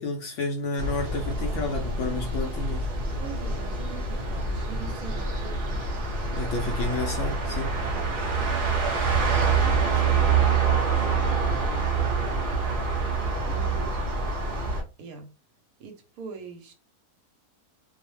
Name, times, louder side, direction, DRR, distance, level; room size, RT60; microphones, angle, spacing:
voice 1, 0.0-2.9 6.3-7.8, left 2 dB, 65° left, 0.8 m, -31 dB
sound 1, 0.8-14.8, right 4 dB, 50° right, 0.6 m, -26 dB
voice 2, 3.2-5.8 7.7-8.1 9.3-11.9 13.4-14.0 15.0-15.3 15.8-16.7, right 5 dB, 75° right, 1.0 m, -44 dB
2.7 x 2.0 x 3.0 m
omnidirectional pair, 1.6 m